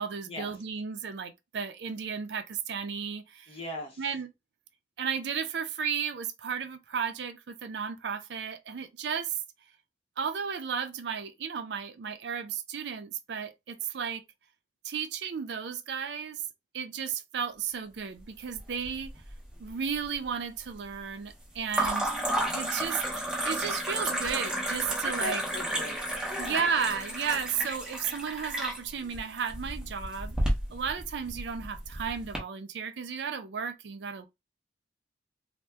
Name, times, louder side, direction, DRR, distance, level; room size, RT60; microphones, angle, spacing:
voice 1, 0.0-3.6 4.0-4.3 5.0-9.4 10.2-14.2 14.8-16.4 16.7-19.1 19.6-22.1 22.5-25.4 26.4-30.4 30.7-34.3, right 6 dB, 70° right, 0.4 m, -34 dB
voice 2, 3.5-4.1 21.8-22.5 25.2-26.0 26.3-26.7, left 2 dB, 30° left, 0.7 m, -40 dB
sound 1, 18.6-19.3 19.6-20.2 21.7-32.4, right 1 dB, 5° right, 0.8 m, -32 dB
2.7 x 2.1 x 3.4 m
head